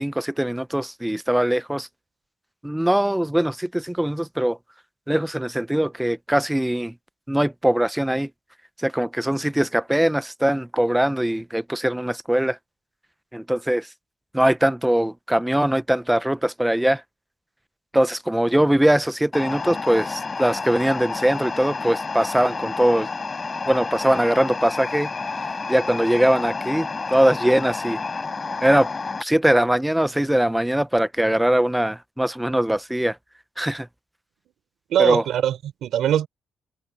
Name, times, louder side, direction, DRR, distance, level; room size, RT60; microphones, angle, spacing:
voice 1, 0.0-1.9 2.6-4.6 5.1-6.9 7.3-8.3 8.8-12.6 13.3-13.9 14.3-17.0 17.9-23.1 23.7-25.1 25.7-28.0 28.6-28.9 29.2-33.2 33.6-33.9 35.0-35.2, right 1 dB, 5° right, 0.6 m, -21 dB
sound 1, 19.3-29.2, left 4 dB, 30° left, 4.7 m, -30 dB
voice 2, 34.9-36.3, right 10 dB, 75° right, 3.7 m, -21 dB
cardioid pair, 90°, 0 cm